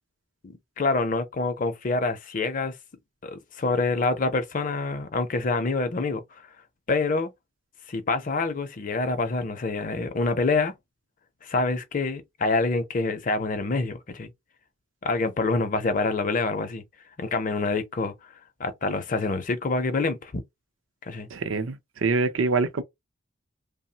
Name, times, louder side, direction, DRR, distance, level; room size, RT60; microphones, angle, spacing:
voice 1, 0.4-2.7 3.2-6.2 6.9-7.3 7.9-10.7 11.4-14.3 15.0-16.8 17.2-18.1 18.6-20.4 21.0-21.3, left 3 dB, 40° left, 0.5 m, -26 dB
voice 2, 21.3-22.8, right 3 dB, 80° right, 0.5 m, -25 dB
3.0 x 2.0 x 2.7 m
head